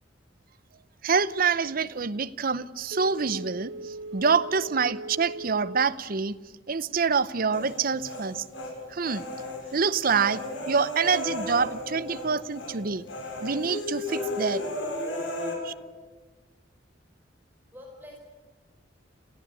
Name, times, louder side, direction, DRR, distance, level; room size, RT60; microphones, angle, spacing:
voice 1, 1.0-6.4 6.7-8.4 8.9-9.2 9.7-13.0 13.4-14.6 15.6-15.7, right 5 dB, 50° right, 0.7 m, -26 dB
Telephone, 2.9-6.0 6.4-6.5, right 2 dB, 65° right, 1.2 m, -39 dB
Human voice, 7.5-8.7 9.0-12.3 12.5-12.8 13.1-15.5, left 1 dB, 85° left, 6.2 m, -34 dB
voice 2, 11.1-11.5 12.0-12.4 17.7-18.2, left 1 dB, 10° right, 4.9 m, -50 dB
27.5 x 15.5 x 9.7 m
head